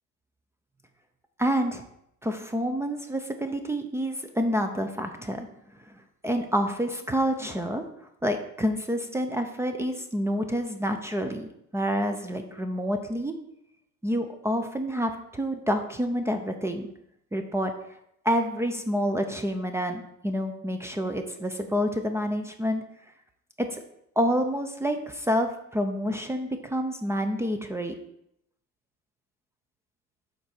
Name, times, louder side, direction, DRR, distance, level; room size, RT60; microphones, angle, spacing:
voice 1, 1.4-1.8 2.2-5.5 6.2-7.8 8.2-13.3 14.0-16.9 17.3-17.7 18.2-22.8 23.6-23.8 24.2-27.9, equal, 10° right, 6 dB, 0.5 m, -28 dB
7.6 x 4.5 x 4.2 m, 0.76 s
cardioid pair, 140°, 29 cm